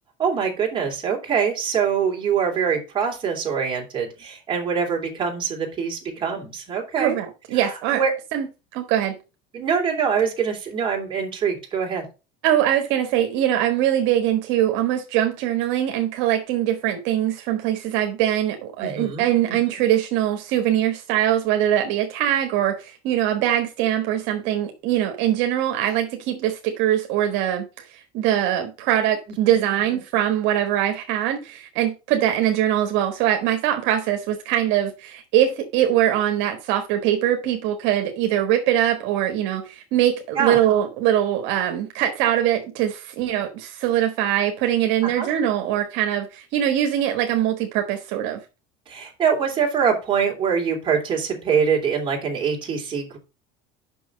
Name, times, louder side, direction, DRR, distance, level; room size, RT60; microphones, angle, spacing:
voice 1, 0.2-7.2 7.5-8.1 9.5-12.0 18.8-19.6 29.4-29.5 40.4-40.6 45.0-45.3 48.9-53.2, right 6 dB, 25° right, 3.0 m, -24 dB
voice 2, 7.0-8.0 8.3-8.5 8.7-9.2 12.4-48.4, right 11 dB, 65° right, 1.3 m, -22 dB
6.1 x 5.8 x 6.5 m
cardioid pair, 155°, 21 cm